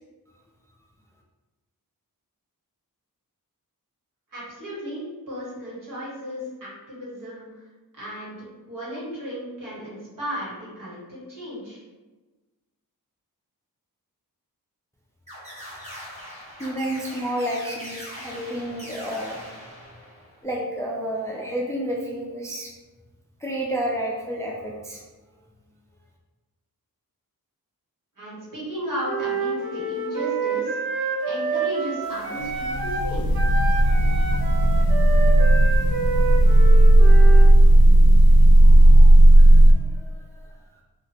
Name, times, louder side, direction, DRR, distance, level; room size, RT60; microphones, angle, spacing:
voice 1, 4.3-7.5 7.9-8.4 8.7-11.8 28.2-30.8 31.2-33.3, equal, 60° right, -8 dB, 1.4 m, -34 dB
sound 1, 15.3-20.4, equal, 15° right, 1.4 m, -41 dB
voice 2, 16.6-19.5 20.4-22.7 23.4-25.0 38.6-39.1 39.3-39.4 39.8-40.3, right 1 dB, 10° left, -2 dB, 0.4 m, -30 dB
Wind instrument woodwind instrument, 29.0-33.1 33.3-37.5, right 4 dB, 75° right, 0.6 m, -28 dB
sound 2, 32.4-39.7, right 1 dB, 70° left, 0.5 m, -13 dB
2.8 x 2.4 x 2.9 m, 1.2 s
wide cardioid pair, 70°, 36 cm